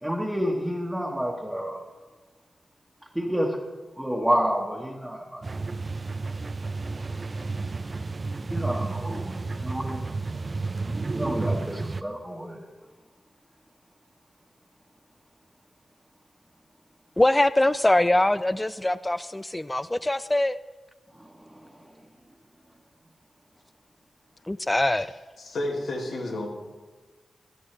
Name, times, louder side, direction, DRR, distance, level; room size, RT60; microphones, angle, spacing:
voice 1, 0.0-1.8 3.1-3.6 4.0-5.5 8.5-10.0 11.1-12.7 21.1-21.9, equal, 5° right, -2 dB, 1.4 m, -29 dB
sound 1, 5.4-12.0, right 3 dB, 45° right, 0.5 m, -31 dB
voice 2, 17.2-20.6 24.5-25.1, left 1 dB, 20° left, 15 dB, 0.3 m, -23 dB
voice 3, 25.4-26.5, left 1 dB, 80° left, 0 dB, 2.2 m, -31 dB
16.5 x 12.5 x 3.3 m, 1.3 s
cardioid pair, 55°, 0 cm